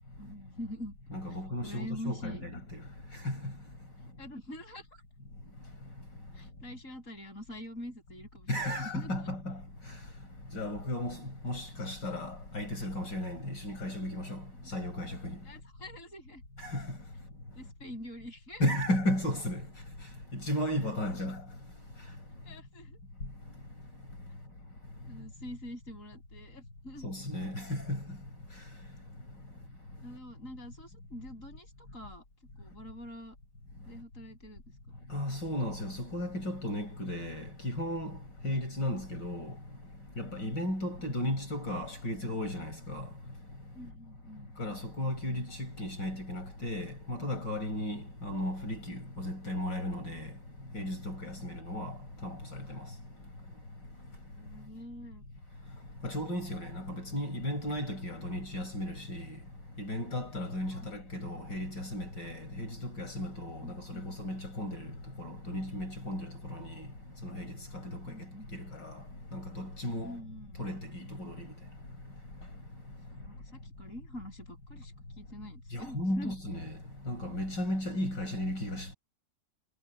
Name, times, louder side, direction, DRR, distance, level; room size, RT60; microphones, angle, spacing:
voice 1, 0.2-0.9 1.6-2.4 4.2-5.0 6.3-9.3 15.4-16.4 17.5-18.6 22.4-23.0 25.0-27.1 29.5-29.6 30.0-32.2 32.6-33.4 33.9-35.0 43.7-44.5 51.4-51.6 54.3-55.2 57.1-57.2 60.7-60.9 61.3-61.5 63.6-64.1 68.0-68.5 70.0-70.8 73.1-76.3, left 1 dB, 40° left, 7.4 m, -45 dB
voice 2, 1.1-2.8 3.2-3.4 8.5-9.6 10.5-14.4 14.7-15.4 16.6-16.8 18.6-19.6 20.3-21.4 27.0-28.0 35.1-38.2 38.4-39.5 40.2-43.1 44.6-50.3 50.7-51.9 52.2-52.8 56.0-59.4 59.8-64.9 65.2-66.9 67.2-68.0 68.5-68.9 69.3-70.1 70.6-71.5 75.7-76.8 77.1-78.9, left 1 dB, 65° left, 6.6 m, -35 dB
omnidirectional pair, 2.1 m